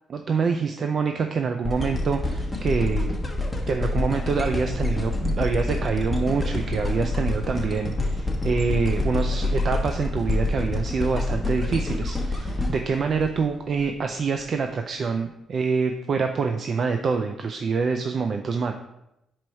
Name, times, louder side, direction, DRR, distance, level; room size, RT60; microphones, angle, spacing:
voice 1, 0.1-3.2 3.7-18.7, right 5 dB, 50° right, 6 dB, 0.4 m, -26 dB
sound 1, 1.6-13.8 14.4-14.5, left 2 dB, 10° left, 1.0 m, -27 dB
4.7 x 4.4 x 5.3 m, 0.87 s
cardioid pair, 90°, 0 cm